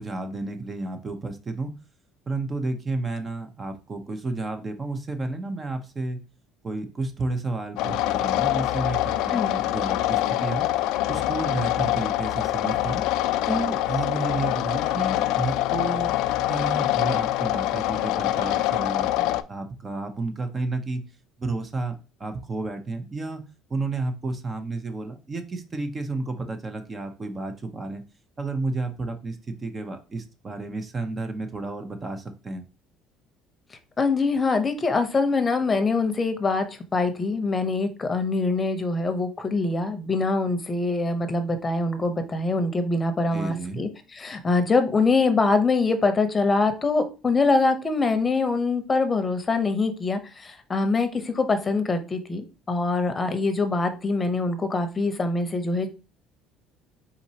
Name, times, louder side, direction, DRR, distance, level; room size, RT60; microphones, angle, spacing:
voice 1, 0.0-1.7 2.3-6.2 6.6-10.7 11.1-13.0 13.5-16.1 16.5-21.0 21.4-23.4 23.7-28.0 28.4-32.6 43.3-43.8, right 3 dB, 30° right, 7 dB, 0.7 m, -31 dB
sound 1, 7.8-19.4, left 14 dB, 75° left, 0.3 m, -25 dB
voice 2, 34.0-36.7 36.9-55.9, left 3 dB, 25° left, 8 dB, 0.8 m, -24 dB
4.3 x 3.9 x 2.8 m, 0.32 s
supercardioid pair, 95°, 0 cm